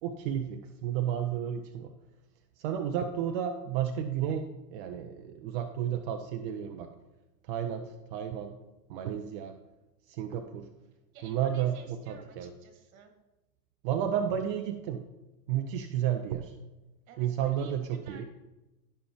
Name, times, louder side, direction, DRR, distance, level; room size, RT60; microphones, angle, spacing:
voice 1, 0.0-1.9 2.6-6.9 7.5-8.6 8.9-9.6 10.1-10.7 11.2-12.5 13.8-15.1 15.5-16.6 17.2-18.2, right 9 dB, 35° right, 6 dB, 0.6 m, -32 dB
voice 2, 11.1-13.1 17.1-18.3, right 5 dB, 55° right, 5 dB, 1.9 m, -53 dB
16.0 x 5.7 x 3.1 m, 1.0 s
figure-of-eight pair, 100°, 49 cm